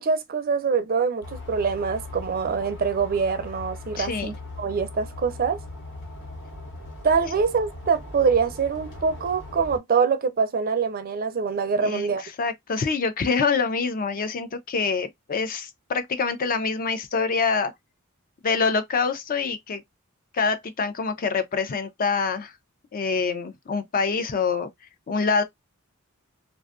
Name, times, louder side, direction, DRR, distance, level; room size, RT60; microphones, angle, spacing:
voice 1, 0.0-5.6 7.0-12.2, right 5 dB, 45° right, 0.5 m, -24 dB
sound 1, 1.2-9.8, left 2 dB, 60° left, 1.0 m, -39 dB
voice 2, 4.0-4.3 11.8-12.1 12.4-17.7 18.4-19.8 20.3-22.5 22.9-24.7 25.1-25.4, left 5 dB, 40° left, 0.4 m, -25 dB
2.5 x 2.3 x 2.3 m
head